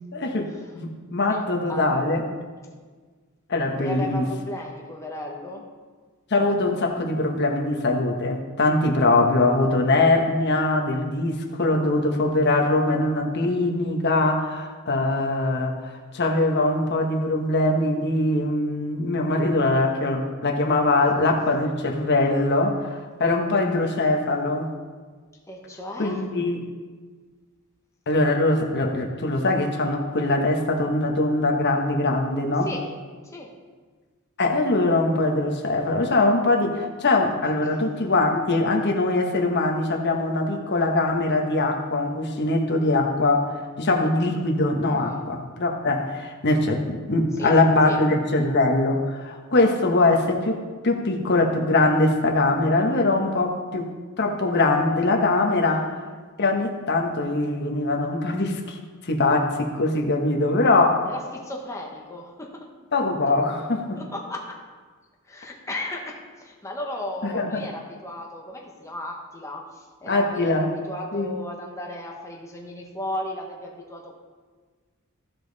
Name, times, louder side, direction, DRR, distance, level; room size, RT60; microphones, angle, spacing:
voice 1, 0.0-2.2 3.5-4.2 6.3-15.8 16.1-24.7 26.0-26.6 28.1-32.7 34.4-43.5 43.8-53.9 54.2-55.9 56.4-58.8 59.1-61.0 62.9-64.0 67.2-67.6 70.1-70.7 71.1-71.3, left 2 dB, 50° left, 2 dB, 1.1 m, -22 dB
voice 2, 1.3-2.3 3.8-5.6 11.6-12.4 25.5-26.2 32.6-32.9 33.2-33.5 37.6-37.8 44.8-45.2 47.4-47.6 47.8-48.0 61.0-62.7 63.9-64.6 65.3-74.2, left 1 dB, 15° left, 0 dB, 1.1 m, -35 dB
15.0 x 5.3 x 4.0 m, 1.5 s
head